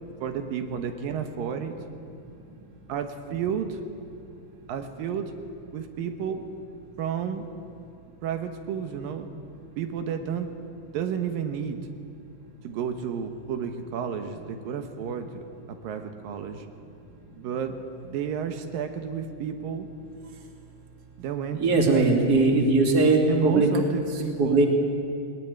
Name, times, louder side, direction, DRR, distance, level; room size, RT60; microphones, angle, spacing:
voice 1, 0.2-1.8 2.9-3.8 4.7-5.3 5.7-6.4 7.0-7.4 8.2-9.3 9.8-10.5 10.8-11.8 12.6-15.4 15.8-16.7 17.3-17.7 18.0-19.9 21.2-22.6 23.3-24.7, right 7 dB, 80° right, 6 dB, 3.0 m, -31 dB
voice 2, 21.6-23.7 24.4-24.7, right 3 dB, 30° right, 2 dB, 2.7 m, -20 dB
21.0 x 20.0 x 9.5 m, 2.6 s
omnidirectional pair, 3.9 m